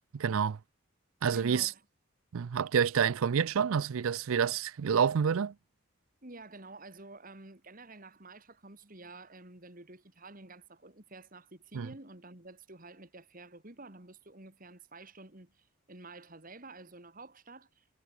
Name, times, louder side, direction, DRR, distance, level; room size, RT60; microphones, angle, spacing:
voice 1, 0.1-0.6 1.2-1.7 2.3-5.5 11.7-11.9, right 7 dB, 70° right, 0.4 m, -28 dB
voice 2, 1.3-1.8 6.2-17.9, right 2 dB, 40° right, 2.4 m, -50 dB
head